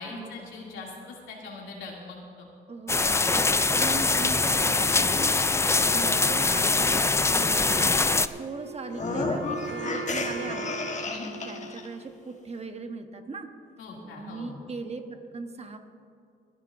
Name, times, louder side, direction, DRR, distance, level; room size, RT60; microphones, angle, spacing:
voice 1, 0.0-2.5 11.0-11.3 13.8-14.6, left 3 dB, 75° left, -2 dB, 2.7 m, -41 dB
voice 2, 2.7-10.8 11.5-13.5 14.0-15.8, right 4 dB, 30° right, 6 dB, 1.1 m, -39 dB
sound 1, 2.9-8.3, left 3 dB, 15° left, 0.4 m, -23 dB
Wind instrument woodwind instrument, 8.3-12.3, right 5 dB, 75° right, 2.1 m, -40 dB
sound 2, 8.9-11.9, left 3 dB, 35° left, 1.3 m, -32 dB
28.0 x 11.0 x 2.6 m, 2.3 s
cardioid pair, 90°, 20 cm